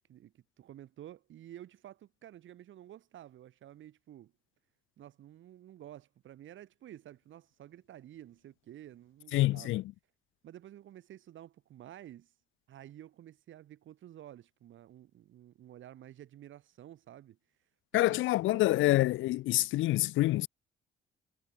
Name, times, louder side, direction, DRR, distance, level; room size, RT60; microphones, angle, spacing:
voice 1, 0.1-4.3 5.0-9.8 10.4-12.3 12.7-17.4 17.9-18.9, right 12 dB, 75° right, 6.0 m, -51 dB
voice 2, 9.3-9.8 17.9-20.5, left 17 dB, 80° left, 0.5 m, -27 dB
cardioid pair, 90°, 20 cm